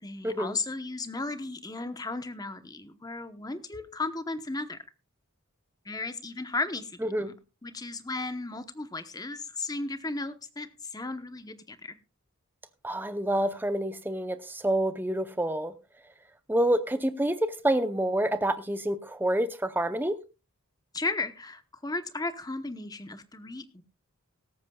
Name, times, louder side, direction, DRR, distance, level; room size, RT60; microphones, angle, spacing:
voice 1, 0.0-4.8 5.8-7.3 7.6-12.0 20.9-23.8, left 3 dB, 15° left, 0.9 m, -35 dB
voice 2, 12.8-15.7 16.5-20.2, right 1 dB, 10° right, 0.7 m, -27 dB
17.5 x 14.0 x 2.3 m
head